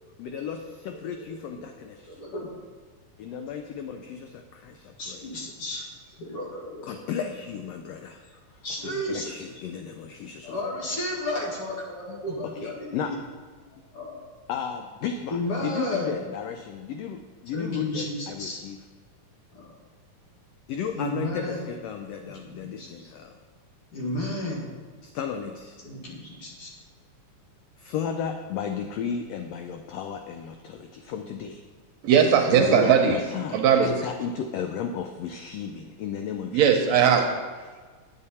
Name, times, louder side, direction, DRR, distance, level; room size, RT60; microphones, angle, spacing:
voice 1, 0.2-1.7 3.2-5.2 6.8-8.2 8.5-10.6 12.1-12.2 12.6-13.1 14.5-18.8 20.7-23.4 25.0-25.8 27.8-31.6 32.5-36.8, left 7 dB, 80° left, 5 dB, 1.4 m, -34 dB
voice 2, 5.0-5.8 6.2-7.0 8.3-9.3 10.4-13.2 13.9-14.1 15.3-16.1 17.5-18.6 19.5-19.7 20.9-21.7 22.2-23.1 23.9-24.7 25.8-26.7, left 1 dB, 55° left, -3 dB, 2.6 m, -33 dB
voice 3, 32.0-33.2 33.5-33.9 36.5-37.3, right 7 dB, 75° right, 4 dB, 1.8 m, -19 dB
9.0 x 8.5 x 4.2 m, 1.4 s
omnidirectional pair, 3.4 m